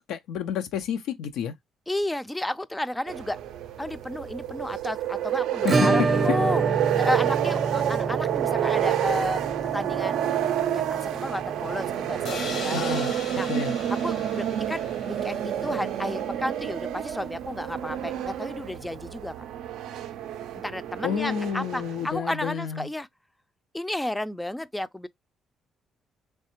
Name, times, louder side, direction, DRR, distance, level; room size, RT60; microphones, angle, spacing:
voice 1, 0.1-1.5 5.6-6.0 12.7-13.7 21.0-22.9, left 8 dB, 90° left, 0.4 m, -30 dB
voice 2, 1.9-3.4 3.8-6.6 7.0-10.2 10.7-12.8 13.3-13.5 13.9-19.3 20.6-23.1 23.7-25.1, left 1 dB, 10° left, 0.3 m, -32 dB
sound 1, 3.1-22.1, right 11 dB, 85° right, 0.3 m, -29 dB
Acoustic guitar / Strum, 5.7-14.3 14.5-14.6 14.9-15.0 15.4-15.5 17.5-17.6 18.8-18.9, right 3 dB, 35° right, 0.6 m, -29 dB
sound 2, 12.2-16.1, left 5 dB, 70° left, 1.0 m, -39 dB
3.2 x 3.2 x 2.8 m
cardioid pair, 90°, 0 cm